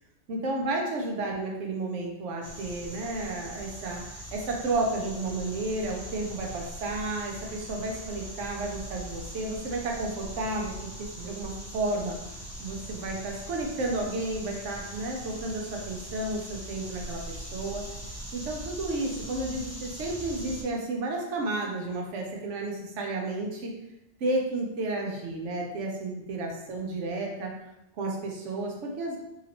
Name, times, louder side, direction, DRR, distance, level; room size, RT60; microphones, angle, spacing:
voice 1, 0.3-10.7 11.0-12.2 12.6-17.8 18.3-23.7 24.2-27.5 28.0-29.2, right 2 dB, 85° right, 0 dB, 1.0 m, -32 dB
sound 1, 2.4-20.6, right 1 dB, 20° left, 0.5 m, -41 dB
2.9 x 2.7 x 2.8 m, 0.90 s
omnidirectional pair, 1.2 m